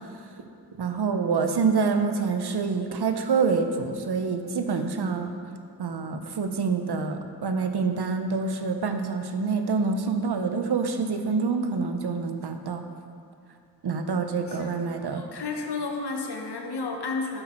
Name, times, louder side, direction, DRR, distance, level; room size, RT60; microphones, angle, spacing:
voice 1, 0.8-5.3 5.8-12.8 13.8-15.2, right 4 dB, 70° right, 7 dB, 0.7 m, -26 dB
voice 2, 15.1-17.4, left 4 dB, 70° left, 2 dB, 1.0 m, -32 dB
7.8 x 6.0 x 4.4 m, 2.5 s
cardioid pair, 55°, 41 cm